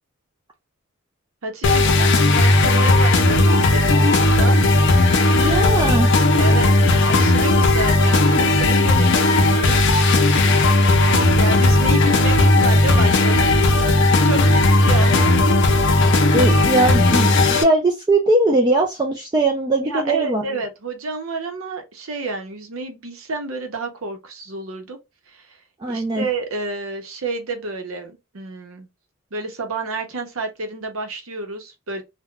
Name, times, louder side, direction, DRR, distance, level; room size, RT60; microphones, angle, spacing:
voice 1, 1.4-4.6 6.3-6.7 7.1-10.0 10.9-13.5 14.2-15.4 19.8-25.0 25.3-25.6 25.8-28.9 29.3-32.0, right 3 dB, 85° right, 0.7 m, -29 dB
sound 1, 1.6-17.6, left 2 dB, 55° left, 0.5 m, -16 dB
voice 2, 5.4-6.1 16.3-20.4 25.8-26.2, right 2 dB, 20° right, 0.4 m, -20 dB
3.6 x 2.2 x 2.2 m
head